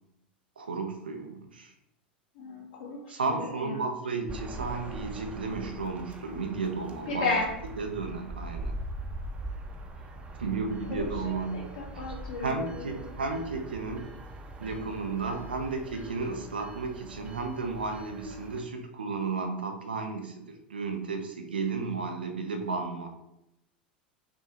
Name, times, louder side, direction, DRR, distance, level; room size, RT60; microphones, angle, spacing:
voice 1, 0.6-1.7 3.1-7.3 7.8-8.7 10.4-11.5 11.9-12.0 12.4-14.1 14.6-23.1, right 4 dB, 80° right, 5 dB, 0.7 m, -33 dB
voice 2, 2.3-3.9 7.1-7.5 10.9-13.2, left 3 dB, 60° left, -2 dB, 1.4 m, -34 dB
sound 1, 4.3-18.6, right 1 dB, 25° right, 0.7 m, -42 dB
6.1 x 2.3 x 2.9 m, 0.83 s
figure-of-eight pair, 85°, 5 cm